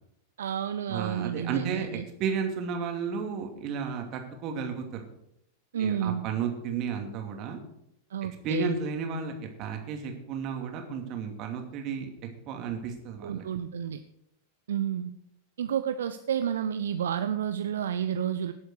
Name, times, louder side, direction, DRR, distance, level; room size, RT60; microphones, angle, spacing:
voice 1, 0.4-2.0 5.7-6.2 8.1-8.8 13.2-14.0 14.7-15.1 15.6-18.5, right 9 dB, 65° right, 10 dB, 0.6 m, -30 dB
voice 2, 0.9-4.8 5.8-7.6 8.4-9.3 9.6-12.1 12.5-13.4, right 6 dB, 40° right, 3 dB, 2.6 m, -33 dB
18.5 x 7.9 x 4.8 m, 0.79 s
figure-of-eight pair, 90°, 0 cm